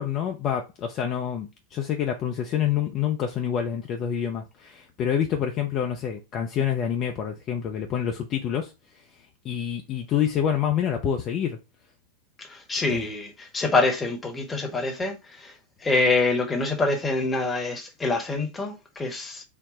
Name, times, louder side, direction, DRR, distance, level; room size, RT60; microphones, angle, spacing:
voice 1, 0.0-9.1 9.4-11.6 12.9-13.1, left 9 dB, 35° left, 0.5 m, -27 dB
voice 2, 12.4-15.5 15.8-19.4, left 3 dB, 15° left, 1.0 m, -26 dB
4.0 x 2.1 x 4.1 m
figure-of-eight pair, 90°, 0 cm